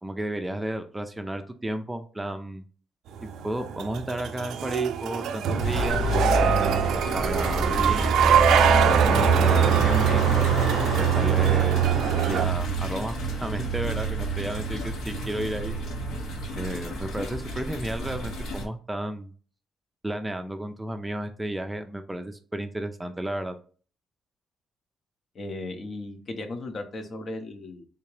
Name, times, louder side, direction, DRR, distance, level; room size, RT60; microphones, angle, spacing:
voice 1, 0.0-2.6 3.2-6.8 7.1-8.2 8.8-10.2 11.0-11.8 12.3-15.8 16.6-19.3 20.0-23.5, right 1 dB, 10° right, 7 dB, 0.4 m, -33 dB
sound 1, 3.2-12.5, right 8 dB, 80° right, 0.3 m, -24 dB
sound 2, 5.6-18.6, right 3 dB, 85° left, 1.0 m, -26 dB
voice 2, 25.3-27.9, left 2 dB, 50° left, 6 dB, 0.7 m, -36 dB
3.5 x 2.8 x 3.1 m, 0.40 s
cardioid pair, 90°, 0 cm